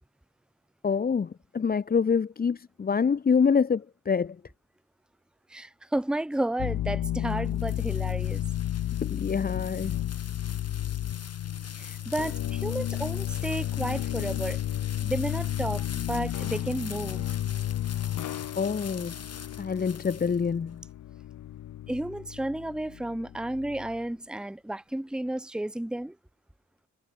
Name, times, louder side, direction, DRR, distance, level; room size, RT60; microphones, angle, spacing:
voice 1, 0.8-4.4 9.0-10.0 18.6-19.1 19.6-20.8, left 6 dB, 30° left, 0.6 m, -26 dB
voice 2, 5.5-8.4 11.7-14.6 15.0-17.2 21.9-26.2, right 1 dB, 5° right, 0.9 m, -32 dB
sound 1, 6.6-24.0, left 12 dB, 90° left, 0.6 m, -32 dB
sound 2, 6.9-20.7, left 6 dB, 55° left, 2.9 m, -44 dB
wide cardioid pair, 95°, 30 cm